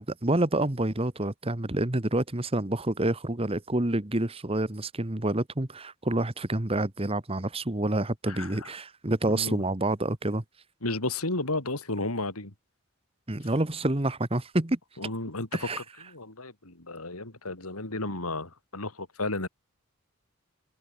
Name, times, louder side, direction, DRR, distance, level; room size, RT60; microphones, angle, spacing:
voice 1, 0.0-10.4 13.3-14.8 15.5-15.8, right 1 dB, 25° right, 1.4 m, -28 dB
voice 2, 8.3-8.7 9.3-9.6 10.8-12.5 15.0-15.7 16.1-19.5, left 2 dB, 90° left, 4.1 m, -33 dB
head